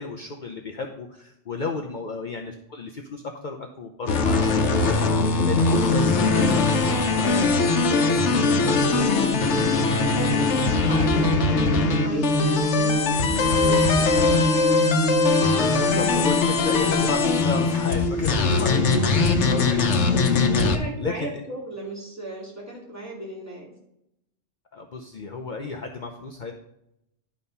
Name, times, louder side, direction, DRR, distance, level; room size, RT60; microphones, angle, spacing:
voice 1, 0.0-6.3 7.0-7.4 15.2-20.3 20.6-20.7 21.0-21.3 24.7-26.5, left 3 dB, 50° left, 2 dB, 0.8 m, -33 dB
sound 1, 4.1-20.8, left 3 dB, 90° left, 1.2 m, -21 dB
voice 2, 7.9-9.8 10.1-14.2 18.7-19.0 20.5-23.7, right 2 dB, 15° right, -5 dB, 2.7 m, -35 dB
11.5 x 4.2 x 5.4 m, 0.82 s
omnidirectional pair, 1.1 m